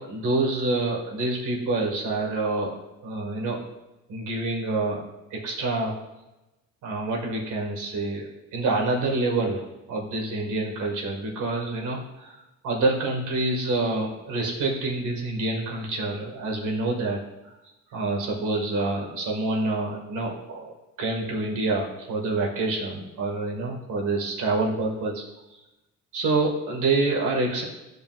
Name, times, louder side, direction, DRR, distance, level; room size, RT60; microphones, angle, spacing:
voice 1, 0.0-2.8 3.0-3.6 4.1-5.0 5.3-5.9 6.8-17.5 17.9-25.2 25.5-25.6 26.1-27.6, right 2 dB, 80° right, -1 dB, 2.2 m, -27 dB
13.0 x 5.2 x 2.6 m, 1.0 s
cardioid pair, 90°, 30 cm